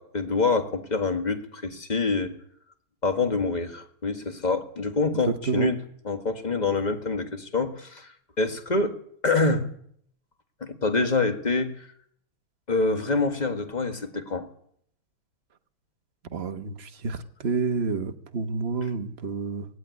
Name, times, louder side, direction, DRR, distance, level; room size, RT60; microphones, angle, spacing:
voice 1, 0.0-2.3 3.0-8.1 8.4-9.0 9.2-9.7 10.6-11.9 12.7-14.5, left 3 dB, 20° left, 7 dB, 1.6 m, -26 dB
voice 2, 16.3-19.7, right 5 dB, 40° right, 8 dB, 1.0 m, -29 dB
18.0 x 16.0 x 9.6 m, 0.67 s
omnidirectional pair, 2.4 m